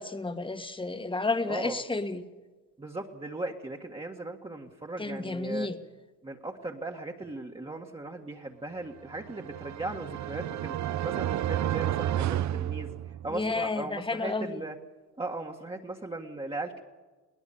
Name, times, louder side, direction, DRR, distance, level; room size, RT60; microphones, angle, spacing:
voice 1, 0.0-2.3 5.0-5.8 13.3-14.6, left 3 dB, 15° left, 8 dB, 1.7 m, -31 dB
voice 2, 1.4-1.8 2.8-5.7 6.2-13.0 13.2-14.8 15.2-16.8, right 2 dB, 20° right, -1 dB, 1.8 m, -38 dB
sound 1, 9.1-13.5, right 12 dB, 65° right, 0.7 m, -31 dB
21.0 x 19.0 x 7.2 m, 1.3 s
cardioid pair, 90°, 30 cm